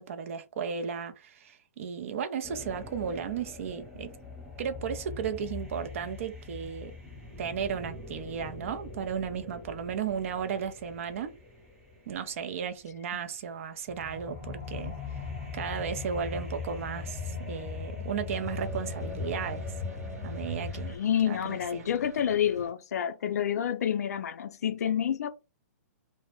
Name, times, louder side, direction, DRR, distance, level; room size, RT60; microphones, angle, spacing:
voice 1, 0.0-4.1 4.6-6.9 7.4-11.3 12.1-14.9 15.5-19.7 20.2-21.0 21.2-21.9, right 7 dB, 55° right, 0.5 m, -35 dB
sound 1, 2.4-12.3 13.9-21.0, left 3 dB, 5° right, 0.8 m, -40 dB
sound 2, 18.3-22.7, equal, 80° right, 1.1 m, -49 dB
voice 2, 20.9-25.3, left 9 dB, 75° left, 0.4 m, -28 dB
2.1 x 2.0 x 3.0 m
hypercardioid pair, 140°, 9 cm